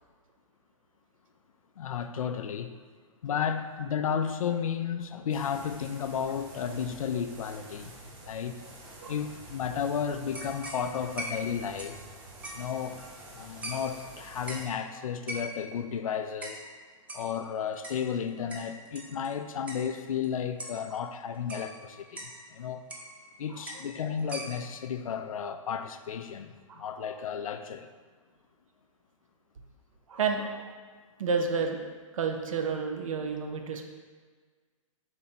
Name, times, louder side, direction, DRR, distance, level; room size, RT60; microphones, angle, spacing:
voice 1, 1.8-2.7 3.2-7.9 8.2-8.6 9.1-12.0 12.5-13.0 13.3-16.6 17.1-22.8 23.4-27.9, left 7 dB, 75° left, 9 dB, 0.4 m, -33 dB
sound 1, 5.3-14.7, right 1 dB, 30° right, 0.9 m, -49 dB
sound 2, 10.3-13.3 13.6-14.1 14.5-14.8 15.3-15.8 16.4-16.7 17.1-19.4 19.7-19.9 20.2-20.3 20.6-20.9 21.5-22.4 22.9-23.3 23.7-23.9 24.2-24.8, right 1 dB, 10° right, 0.4 m, -42 dB
voice 2, 26.7-27.0 30.1-30.7 31.2-31.8 32.1-33.8, right 5 dB, 70° right, 4 dB, 0.6 m, -31 dB
3.9 x 3.0 x 4.1 m, 1.5 s
hypercardioid pair, 130°, 18 cm